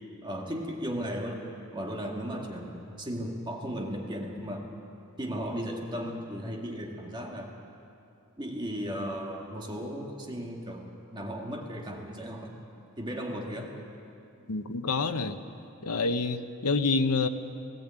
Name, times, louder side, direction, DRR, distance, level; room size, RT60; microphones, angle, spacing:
voice 1, 0.2-1.4 1.7-4.7 5.2-7.5 8.4-12.5 13.0-13.7, equal, 20° right, 0 dB, 1.9 m, -36 dB
voice 2, 14.5-15.4 15.8-17.3, left 3 dB, 85° left, 8 dB, 1.0 m, -27 dB
18.0 x 17.0 x 8.9 m, 2.6 s
head